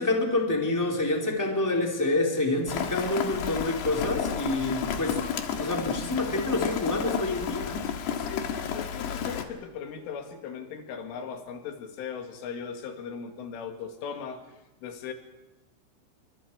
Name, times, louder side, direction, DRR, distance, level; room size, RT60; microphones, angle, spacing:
voice 1, 0.0-5.2 5.6-7.8, left 2 dB, 5° left, 0 dB, 3.4 m, -27 dB
Rain, 2.7-9.4, left 7 dB, 65° left, 3.6 m, -31 dB
voice 2, 8.2-14.4 14.8-15.1, left 6 dB, 90° left, 5 dB, 4.7 m, -38 dB
29.0 x 25.5 x 4.8 m, 1.0 s
omnidirectional pair, 5.5 m